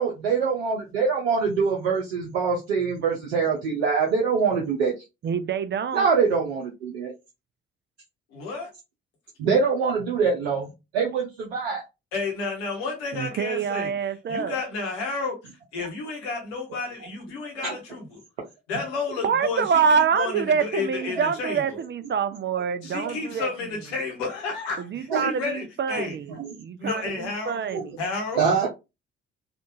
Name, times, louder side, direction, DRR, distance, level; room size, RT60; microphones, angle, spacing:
voice 1, 0.0-4.9 5.9-7.1 9.4-10.7 10.9-11.8 17.6-17.7 23.0-23.1 25.1-25.3 26.3-26.5 27.7-27.8 28.4-28.7, right 5 dB, 80° right, 0.7 m, -24 dB
voice 2, 5.2-6.1 13.1-14.6 19.2-23.5 24.9-26.3 26.6-28.0, right 6 dB, 35° right, 0.4 m, -26 dB
voice 3, 8.3-8.7 12.1-13.9 14.3-15.3 15.7-18.2 18.7-21.6 22.8-26.2 26.8-27.6 28.0-28.4, left 4 dB, 80° left, 1.1 m, -31 dB
3.6 x 2.4 x 2.5 m
hypercardioid pair, 40°, 31 cm